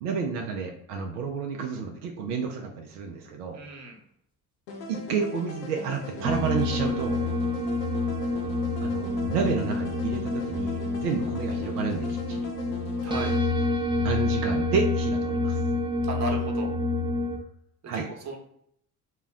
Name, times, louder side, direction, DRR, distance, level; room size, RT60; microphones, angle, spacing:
voice 1, 0.0-3.6 4.9-7.2 8.8-12.5 14.0-15.6 17.9-18.1, right 5 dB, 80° right, 2 dB, 0.5 m, -30 dB
voice 2, 3.5-4.0 13.0-13.3 16.1-16.8 17.9-18.4, right 3 dB, 35° right, 1 dB, 1.0 m, -35 dB
sound 1, 4.7-13.4, left 2 dB, 75° left, 0.6 m, -40 dB
sound 2, 6.2-17.4, left 2 dB, 10° right, 0.6 m, -28 dB
2.2 x 2.1 x 3.6 m, 0.71 s
figure-of-eight pair, 55°, 46 cm